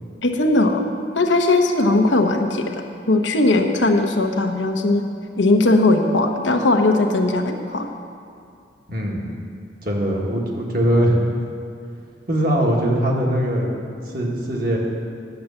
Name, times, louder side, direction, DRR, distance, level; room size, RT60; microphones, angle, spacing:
voice 1, 0.2-0.8 1.1-2.7 3.1-5.0 5.4-7.9, left 2 dB, 80° left, 4 dB, 1.0 m, -18 dB
voice 2, 8.9-9.4 9.8-11.3 12.3-13.8 14.1-14.8, right 1 dB, 50° right, -2 dB, 1.9 m, -21 dB
10.5 x 7.8 x 7.1 m, 2.4 s
head